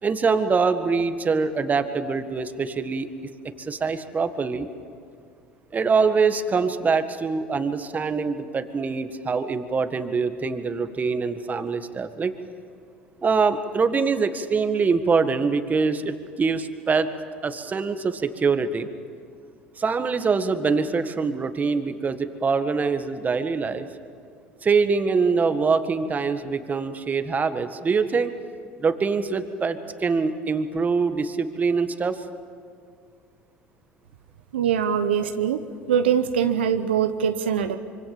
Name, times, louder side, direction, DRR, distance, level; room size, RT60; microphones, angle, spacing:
voice 1, 0.0-3.1 3.6-4.7 5.7-12.3 13.2-17.1 17.4-18.9 19.8-23.9 24.6-28.3 28.8-32.2, right 5 dB, 30° right, 9 dB, 1.7 m, -24 dB
voice 2, 34.5-35.6 35.9-37.8, right 8 dB, 90° right, 8 dB, 0.9 m, -22 dB
25.5 x 24.5 x 7.3 m, 2.2 s
hypercardioid pair, 75°, 6 cm